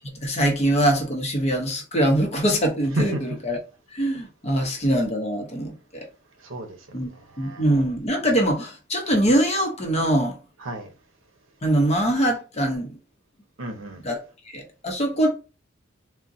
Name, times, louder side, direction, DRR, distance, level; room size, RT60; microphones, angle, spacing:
voice 1, 0.2-3.1 3.5-3.6 3.9-6.1 6.9-7.1 7.4-10.4 11.6-13.0 14.1-14.2 14.5-15.3, right 1 dB, 35° left, 0.8 m, -23 dB
voice 2, 2.9-3.2 6.4-7.7 10.6-10.9 13.6-14.0, right 1 dB, 75° right, 0.7 m, -32 dB
3.7 x 2.1 x 2.6 m
head